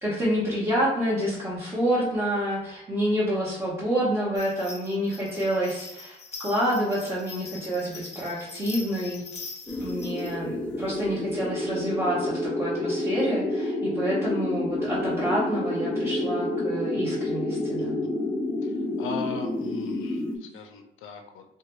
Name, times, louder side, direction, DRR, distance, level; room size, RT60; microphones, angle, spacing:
voice 1, 0.0-9.5 9.8-18.0, equal, 15° right, -9 dB, 1.0 m, -28 dB
sound 1, 4.4-10.3, left 3 dB, 35° left, 0.8 m, -43 dB
sound 2, 9.7-20.4, left 1 dB, 5° left, 0.5 m, -29 dB
voice 2, 18.6-21.4, left 6 dB, 85° left, 5 dB, 0.5 m, -39 dB
2.7 x 2.2 x 3.0 m, 0.88 s
cardioid pair, 90°, 20 cm